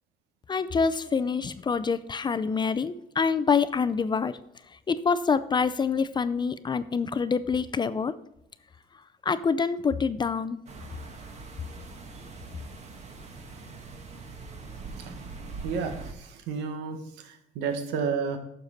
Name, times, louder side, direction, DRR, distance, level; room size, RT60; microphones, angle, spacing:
voice 1, 0.5-4.4 4.7-8.1 9.2-10.6, left 5 dB, 25° left, 14 dB, 0.5 m, -26 dB
sound 1, 10.7-16.1, right 3 dB, 40° right, 1.6 m, -42 dB
voice 2, 15.6-18.4, right 6 dB, 90° right, 6 dB, 1.3 m, -31 dB
9.9 x 6.6 x 4.1 m, 0.80 s
cardioid pair, 110°, 17 cm